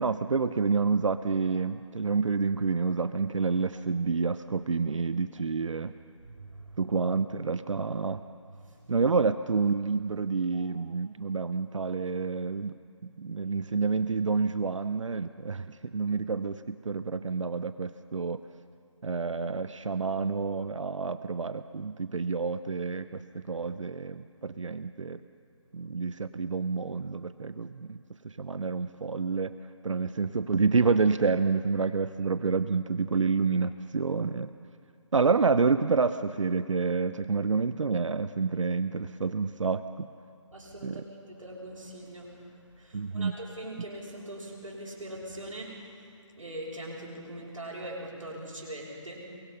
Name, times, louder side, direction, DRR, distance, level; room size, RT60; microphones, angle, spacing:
voice 1, 0.0-5.9 6.8-8.2 8.9-12.7 13.0-18.4 19.0-25.2 25.7-28.0 28.2-29.5 29.8-34.5 35.1-40.1 40.8-41.0 42.9-43.3, right 4 dB, 75° right, 12 dB, 0.8 m, -28 dB
voice 2, 6.4-6.8 8.6-8.8 10.5-10.8 40.5-41.0 41.3-42.5 42.8-45.7 46.4-49.3, right 1 dB, 90° right, -8 dB, 7.1 m, -41 dB
29.0 x 23.0 x 5.7 m, 2.3 s
figure-of-eight pair, 165°, 16 cm